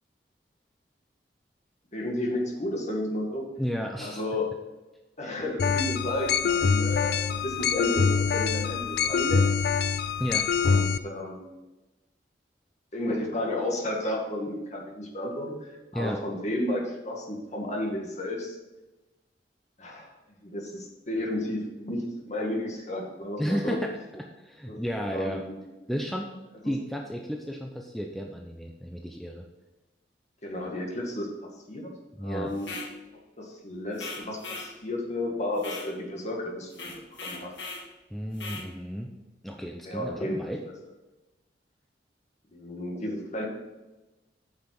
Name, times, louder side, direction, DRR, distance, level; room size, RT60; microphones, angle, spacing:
voice 1, 1.9-3.5 4.0-4.5 5.2-9.4 10.6-11.5 12.9-18.6 19.8-20.1 20.4-23.8 24.7-25.6 26.6-26.7 30.4-31.3 31.7-31.9 32.2-32.8 33.4-36.9 37.2-37.5 39.6-40.4 42.5-43.4, left 1 dB, 40° left, 0 dB, 2.0 m, -32 dB
voice 2, 3.6-4.2 10.2-10.5 15.9-16.2 23.4-25.4 25.9-26.3 26.6-29.4 32.2-32.5 38.1-39.1 39.4-40.6, equal, ahead, 1 dB, 0.7 m, -33 dB
sound 1, 5.6-11.0, left 5 dB, 65° left, 0.4 m, -25 dB
sound 2, 32.6-32.9 34.0-34.7 35.6-35.9 36.7-37.9 38.4-38.7, left 3 dB, 85° left, 1.9 m, -39 dB
8.7 x 5.8 x 6.1 m, 1.1 s
head